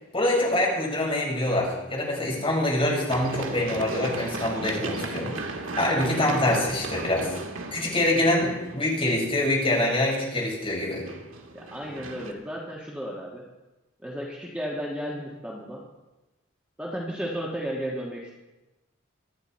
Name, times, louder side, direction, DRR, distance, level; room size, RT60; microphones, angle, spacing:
voice 1, 0.1-5.3 5.8-7.3 7.7-11.0, left 1 dB, 25° left, -3 dB, 5.0 m, -25 dB
Run, 3.1-8.9 10.8-12.3, right 2 dB, 80° right, 1.7 m, -35 dB
voice 2, 11.5-13.4 14.0-15.8 16.8-18.3, equal, 5° right, -3 dB, 1.5 m, -34 dB
24.0 x 9.6 x 4.3 m, 1.1 s
head